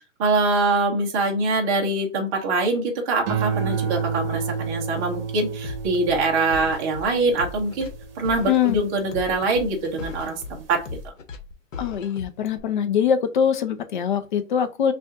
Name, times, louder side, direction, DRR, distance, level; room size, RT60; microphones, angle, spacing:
voice 1, 0.2-7.9 8.2-10.4 10.7-10.8, right 3 dB, 15° right, 0.5 m, -23 dB
sound 1, 3.3-9.8 10.3-10.7, right 7 dB, 45° right, 0.8 m, -30 dB
sound 2, 5.6-12.6, left 4 dB, 70° left, 1.1 m, -37 dB
voice 2, 8.5-8.8 11.8-14.9, left 8 dB, 40° left, 0.6 m, -22 dB
6.0 x 2.4 x 2.5 m
hypercardioid pair, 145°, 40 cm